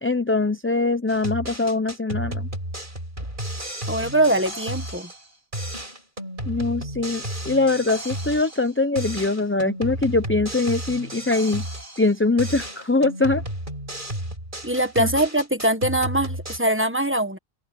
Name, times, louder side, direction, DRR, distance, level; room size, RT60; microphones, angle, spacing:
voice 1, 0.0-2.5 6.5-11.7 12.0-13.4 15.0-15.1, left 3 dB, 15° left, 0.6 m, -22 dB
sound 1, 1.1-5.3 5.5-8.7 8.9-12.1 12.4-16.6, right 1 dB, 55° right, 8.4 m, -32 dB
voice 2, 3.9-5.1 14.6-17.4, right 1 dB, 10° right, 1.4 m, -22 dB
omnidirectional pair, 1.0 m